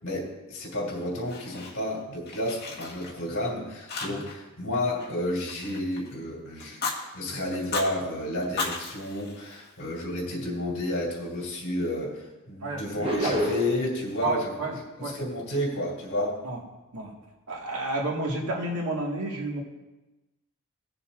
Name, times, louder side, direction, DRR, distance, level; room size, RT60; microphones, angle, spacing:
voice 1, 0.0-16.4, left 1 dB, 60° left, -4 dB, 3.2 m, -31 dB
Fire, 0.9-2.0 2.3-3.5 3.9-4.5 4.7-6.1 6.6-7.0 7.5-7.9 8.4-10.0, left 4 dB, 45° left, 1.7 m, -35 dB
voice 2, 12.6-13.3 14.2-15.2 16.4-16.6 16.9-17.1 17.5-19.6, right 2 dB, 80° right, -2 dB, 1.9 m, -31 dB
sound 1, 13.0-13.9, right 1 dB, 25° right, 1.1 m, -27 dB
18.0 x 7.0 x 2.5 m, 1.1 s
head